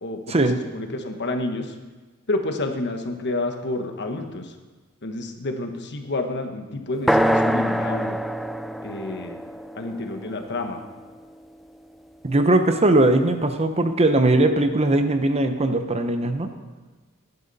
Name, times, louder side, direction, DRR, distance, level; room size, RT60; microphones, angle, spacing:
voice 1, 0.0-0.3 0.7-1.7 2.3-4.5 5.0-8.2 8.8-9.4 9.7-10.8, left 2 dB, 55° left, 5 dB, 1.3 m, -29 dB
sound 1, 7.1-11.0, equal, ahead, 0.3 m, -25 dB
voice 2, 12.2-16.5, right 2 dB, 30° right, 7 dB, 0.8 m, -19 dB
16.0 x 11.0 x 4.2 m, 1.3 s
head